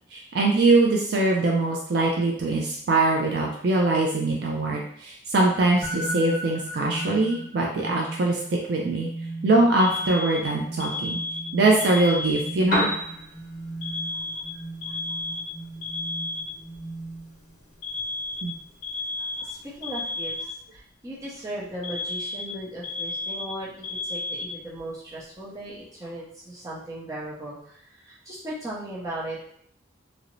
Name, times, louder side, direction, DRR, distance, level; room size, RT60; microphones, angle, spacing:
voice 1, 0.1-9.1 9.4-11.2 11.5-12.9 18.4-18.5, right 2 dB, 55° right, -1 dB, 0.3 m, -22 dB
sound 1, 5.8-17.5, right 2 dB, 25° left, 0.4 m, -37 dB
Alarm, 9.8-12.8 13.8-16.8 17.8-20.8 21.8-24.8, left 2 dB, 85° left, 0.5 m, -33 dB
Piano, 12.5-20.5, equal, 45° left, 0.8 m, -36 dB
voice 2, 14.8-15.2 19.2-29.5, right 1 dB, 15° right, -7 dB, 0.6 m, -37 dB
2.4 x 2.0 x 3.0 m, 0.68 s
head